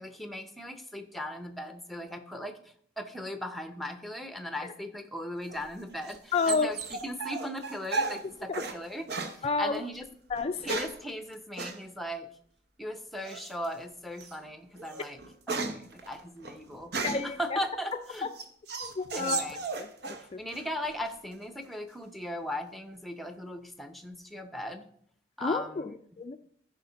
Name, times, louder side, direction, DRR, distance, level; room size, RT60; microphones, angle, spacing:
voice 1, 0.0-9.1 9.4-10.1 10.6-12.3 12.8-15.2 15.5-18.3 19.1-19.6 20.2-24.9 25.4-26.2, equal, ahead, 7 dB, 0.7 m, -38 dB
sound 1, 5.5-8.8 9.1-9.4 10.3-11.0 11.6-11.8 13.3-13.7 14.2-14.4 14.8-17.4 17.9-20.3 20.5-21.1, right 3 dB, 60° right, 1.0 m, -35 dB
voice 2, 6.3-6.7 9.4-9.8 10.3-10.8 17.0-17.6 18.8-19.4 19.8-19.9 20.3-20.4 25.4-26.4, left 4 dB, 35° left, 7 dB, 0.4 m, -30 dB
14.0 x 5.7 x 4.0 m, 0.63 s
head